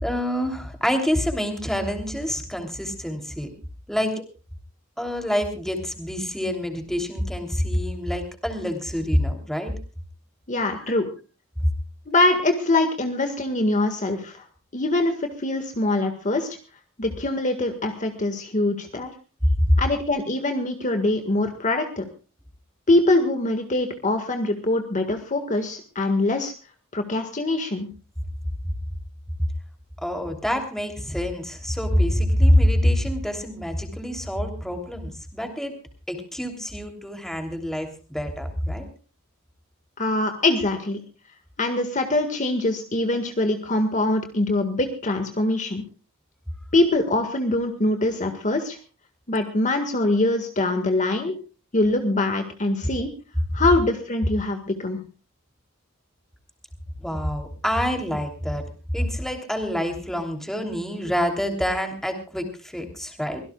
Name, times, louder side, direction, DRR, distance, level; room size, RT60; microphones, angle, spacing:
voice 1, 0.0-3.5 3.9-4.1 5.0-9.7 10.9-11.0 30.0-35.8 36.1-38.9 57.0-58.7 58.9-63.4, equal, ahead, 4 dB, 3.1 m, -26 dB
voice 2, 10.5-11.1 12.1-14.4 14.7-16.5 17.0-19.1 19.8-22.1 22.9-26.5 26.9-27.9 40.0-41.0 41.6-45.8 46.7-48.8 49.3-51.3 51.7-53.1 53.5-55.0, left 2 dB, 40° left, 5 dB, 1.7 m, -23 dB
24.5 x 17.0 x 2.3 m, 0.35 s
head